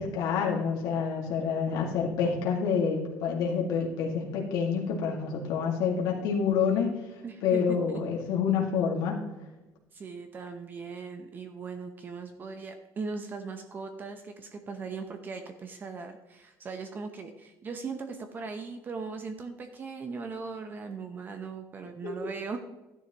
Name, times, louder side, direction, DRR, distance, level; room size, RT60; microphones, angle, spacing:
voice 1, 0.0-6.9 7.4-9.2 22.0-22.1, left 6 dB, 70° left, -2 dB, 2.0 m, -28 dB
voice 2, 7.2-8.1 9.9-22.6, right 4 dB, 30° right, 6 dB, 0.8 m, -39 dB
12.5 x 10.0 x 3.0 m, 1.1 s
cardioid pair, 150°, 7 cm